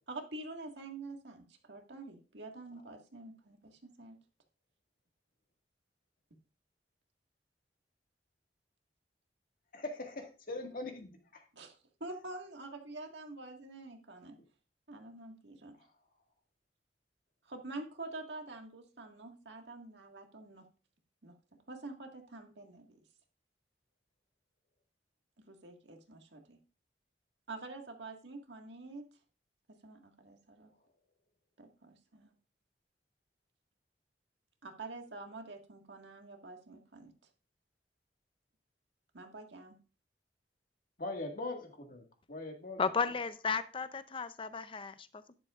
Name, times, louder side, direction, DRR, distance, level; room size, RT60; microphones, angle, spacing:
voice 1, 0.1-4.2 11.5-14.4 14.9-15.8 17.4-20.7 21.2-21.3 21.7-23.0 25.4-26.6 27.5-29.1 29.7-30.7 31.6-32.3 34.6-37.1 39.1-39.8, right 2 dB, 85° right, 3 dB, 1.8 m, -47 dB
voice 2, 9.7-11.4 41.0-42.8, left 2 dB, 55° left, 3 dB, 1.8 m, -41 dB
voice 3, 42.8-45.3, left 5 dB, 30° left, 13 dB, 0.6 m, -34 dB
11.5 x 11.0 x 2.5 m, 0.34 s
head